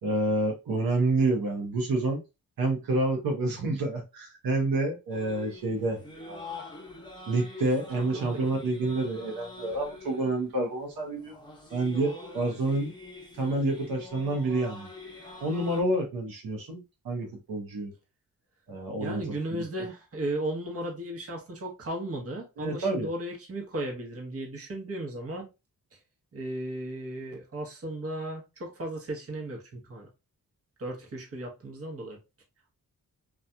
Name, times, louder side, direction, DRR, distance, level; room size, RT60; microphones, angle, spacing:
voice 1, 0.0-2.2 2.6-6.4 7.3-11.3 11.7-12.9 13.4-14.9 15.4-17.9 18.7-19.6 22.6-23.1, right 2 dB, 80° right, 0.9 m, -28 dB
sound 1, 5.1-15.8, left 3 dB, 15° left, 0.8 m, -45 dB
voice 2, 8.0-8.5 19.0-25.5 26.3-30.1 30.8-32.2, right 1 dB, 40° right, 0.9 m, -35 dB
2.8 x 2.3 x 2.2 m
cardioid pair, 75°, 35 cm